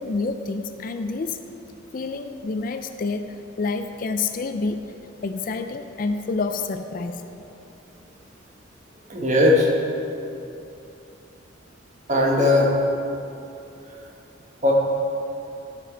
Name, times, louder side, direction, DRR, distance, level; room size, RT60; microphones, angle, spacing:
voice 1, 0.0-1.4 1.9-3.3 3.6-4.9 5.2-7.2, left 3 dB, 45° left, 8 dB, 0.4 m, -28 dB
voice 2, 9.1-9.7 12.1-12.7 13.9-14.0 14.6-14.7, left 2 dB, 35° right, -1 dB, 1.2 m, -18 dB
13.0 x 6.0 x 4.6 m, 2.9 s
head